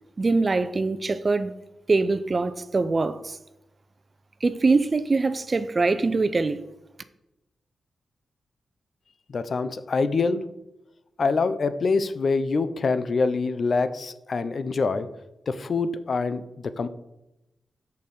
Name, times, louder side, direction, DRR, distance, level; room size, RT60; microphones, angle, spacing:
voice 1, 0.2-1.5 1.9-3.4 4.4-6.6, right 3 dB, 45° right, 0.6 m, -23 dB
voice 2, 9.3-10.5 11.2-15.1 15.5-16.9, left 4 dB, 60° left, 0.6 m, -25 dB
6.5 x 5.4 x 6.6 m
supercardioid pair, 45°, 0 cm